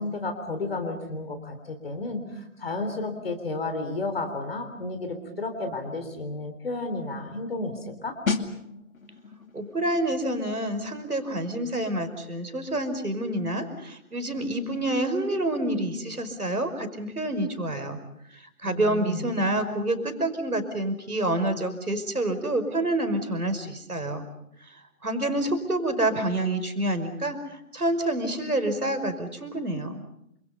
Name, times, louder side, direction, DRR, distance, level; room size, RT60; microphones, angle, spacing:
voice 1, 0.0-8.2 18.6-19.3, left 2 dB, 40° left, 5 dB, 3.7 m, -32 dB
sound 1, 8.3-18.8 19.0-19.3, left 4 dB, 65° left, 2.6 m, -39 dB
voice 2, 9.5-18.0 18.6-24.3 24.7-30.0, right 1 dB, 80° right, 9 dB, 5.4 m, -28 dB
29.0 x 27.0 x 5.6 m, 0.79 s
figure-of-eight pair, 155°, 44 cm